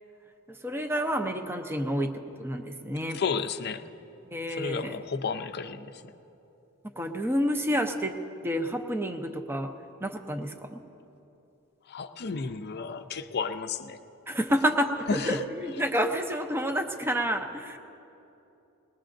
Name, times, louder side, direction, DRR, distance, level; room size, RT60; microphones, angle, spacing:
voice 1, 0.5-3.2 4.3-5.0 6.9-8.2 8.4-9.7 10.0-10.8 14.3-17.8, equal, 10° right, 5 dB, 0.6 m, -29 dB
voice 2, 3.1-3.8 4.5-6.0 11.9-14.0 15.1-15.4, left 5 dB, 45° left, 9 dB, 0.5 m, -32 dB
20.5 x 20.0 x 2.6 m, 2.9 s
head